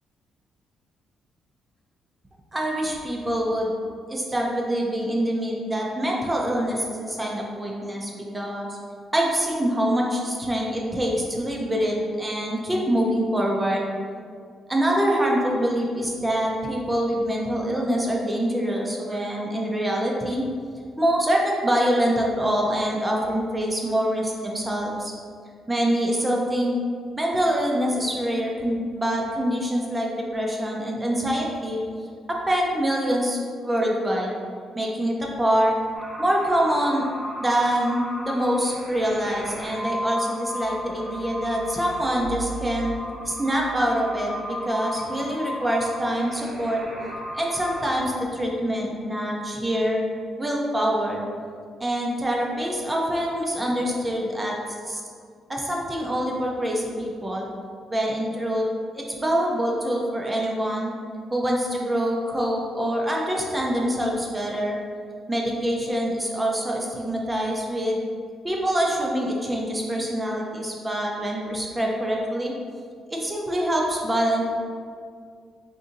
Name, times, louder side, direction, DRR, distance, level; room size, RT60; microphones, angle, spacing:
voice 1, 2.5-3.8 4.1-8.8 9.1-13.9 14.7-20.4 21.0-25.1 25.7-26.8 27.2-31.8 32.3-34.3 34.7-35.7 36.2-37.0 37.4-42.9 43.2-46.8 47.3-50.0 50.4-51.2 51.8-54.6 54.9-55.0 55.5-57.5 57.9-58.6 59.0-60.9 61.3-64.8 65.3-68.0 68.4-72.5 73.1-74.4, equal, 15° right, -1 dB, 0.4 m, -25 dB
sound 1, 35.9-48.0, equal, 35° right, 0.8 m, -35 dB
3.8 x 2.6 x 2.5 m, 2.1 s
cardioid pair, 90°, 0 cm